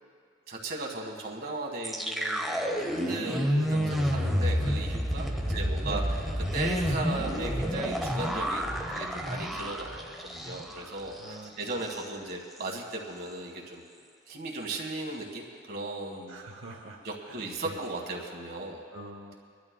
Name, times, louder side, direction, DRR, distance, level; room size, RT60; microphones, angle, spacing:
voice 1, 0.5-2.4 2.8-10.1 10.3-13.8 14.3-16.4 17.0-18.8, right 2 dB, 55° right, 0 dB, 1.8 m, -36 dB
sound 1, 1.8-10.9 11.2-11.3 11.7-12.1, equal, ahead, 0.9 m, -29 dB
voice 2, 5.2-6.0 11.2-11.5 16.3-17.0 17.3-17.4 18.9-19.3, right 3 dB, 85° right, 0 dB, 0.8 m, -44 dB
26.0 x 12.0 x 2.3 m, 2.2 s
head